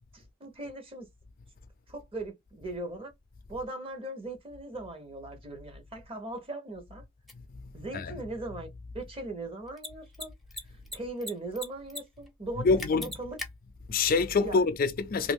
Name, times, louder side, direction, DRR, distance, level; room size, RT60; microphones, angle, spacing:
voice 1, 0.1-1.1 1.9-3.1 3.5-7.0 7.7-8.7 8.9-10.3 10.9-13.4 14.4-14.6, right 2 dB, 30° right, 0.9 m, -39 dB
Mechanisms, 7.3-7.4 9.7-9.9 10.1-10.3 10.5-11.3 11.6-12.0 12.3-12.4 12.8-13.5, left 2 dB, ahead, 0.6 m, -37 dB
voice 2, 7.6-8.2 12.6-13.1 13.9-15.3, left 4 dB, 45° left, 0.4 m, -26 dB
2.8 x 2.5 x 3.4 m
head